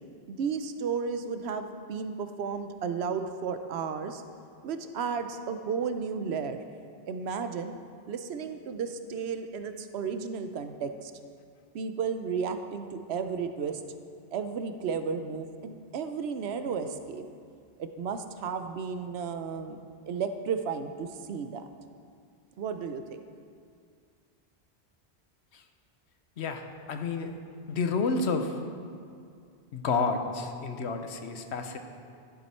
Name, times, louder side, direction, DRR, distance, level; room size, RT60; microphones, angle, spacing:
voice 1, 0.3-4.2 4.6-6.6 7.1-7.7 8.1-11.1 11.7-13.8 14.3-17.2 17.8-19.8 20.1-21.7 22.6-23.3, right 6 dB, 75° right, 9 dB, 0.9 m, -33 dB
voice 2, 26.4-27.3 27.7-28.6 29.7-31.8, left 4 dB, 80° left, 6 dB, 1.1 m, -30 dB
12.0 x 7.3 x 4.3 m, 2.3 s
omnidirectional pair, 1.1 m